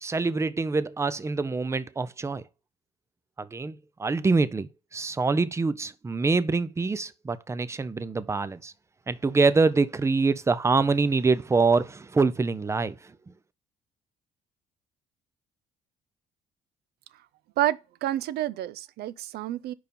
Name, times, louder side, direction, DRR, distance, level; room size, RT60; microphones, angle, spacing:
voice 1, 0.0-2.4 3.4-8.7 9.1-13.2, right 4 dB, 15° right, 0.5 m, -25 dB
voice 2, 17.6-19.7, right 14 dB, 70° right, 0.5 m, -29 dB
5.3 x 4.7 x 5.2 m
cardioid pair, 110°, 17 cm